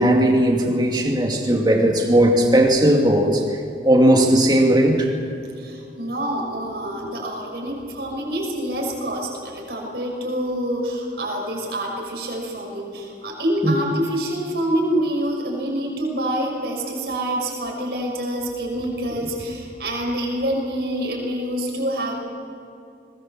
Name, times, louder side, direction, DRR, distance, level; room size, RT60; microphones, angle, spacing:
voice 1, 0.0-3.4 3.8-5.1 13.6-13.7, right 1 dB, 25° right, 1 dB, 2.6 m, -17 dB
voice 2, 5.6-22.1, right 1 dB, 65° right, -1 dB, 6.2 m, -26 dB
21.5 x 20.5 x 7.6 m, 2.5 s
head